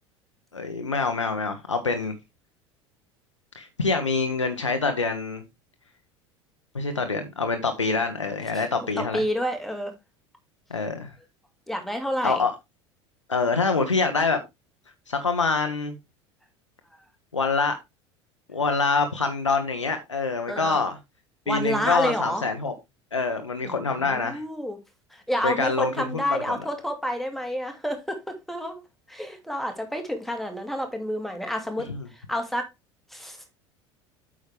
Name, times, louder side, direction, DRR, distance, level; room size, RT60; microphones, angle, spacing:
voice 1, 0.5-2.1 3.5-5.4 6.7-9.2 10.7-11.1 12.2-12.5 13.3-14.4 15.1-15.9 17.3-17.8 18.5-21.0 21.5-22.7 23.1-24.4 25.4-26.4 31.9-32.0, left 4 dB, 85° left, 1.1 m, -25 dB
voice 2, 8.5-9.9 11.7-12.4 20.5-20.8 21.5-22.5 23.6-24.8 25.1-28.8 29.1-32.7 33.1-33.4, equal, ahead, 2.4 m, -29 dB
8.5 x 6.3 x 3.4 m
figure-of-eight pair, 70°, 15 cm